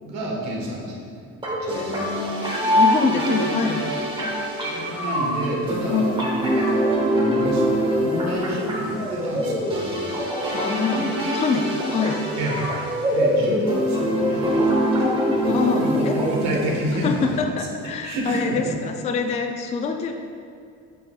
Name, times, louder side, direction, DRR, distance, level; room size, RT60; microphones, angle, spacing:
voice 1, 0.0-2.2 4.6-6.8 7.1-10.1 12.3-12.7 13.1-17.7 18.0-18.7, right 1 dB, 65° right, -1 dB, 1.4 m, -29 dB
sound 1, 1.4-17.4, equal, 15° right, 1.1 m, -24 dB
voice 2, 1.7-4.3 5.9-6.1 10.5-12.2 15.4-16.2 17.0-20.1, left 5 dB, 25° left, 4 dB, 0.3 m, -25 dB
7.8 x 6.0 x 2.3 m, 2.3 s
cardioid pair, 155°, 30 cm